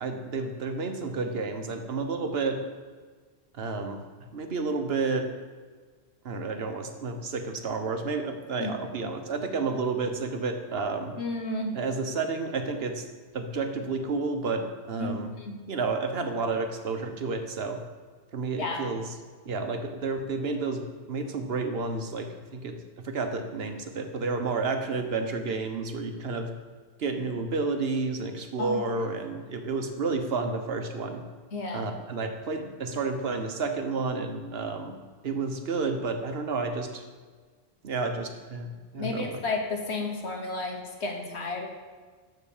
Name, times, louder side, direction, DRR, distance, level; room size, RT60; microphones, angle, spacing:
voice 1, 0.0-2.6 3.5-4.0 4.3-5.3 6.2-11.1 11.7-13.0 13.3-15.3 15.7-17.8 18.3-19.1 19.4-22.8 23.0-26.5 27.0-31.2 31.7-35.0 35.2-37.0 37.8-39.4, right 4 dB, 70° right, 6 dB, 1.2 m, -31 dB
voice 2, 8.6-9.1 11.2-11.8 15.0-15.1 15.4-15.6 18.6-18.9 28.6-29.1 31.5-31.9 39.0-41.7, left 2 dB, 85° left, 2 dB, 1.6 m, -32 dB
12.0 x 4.0 x 7.1 m, 1.5 s
omnidirectional pair, 1.1 m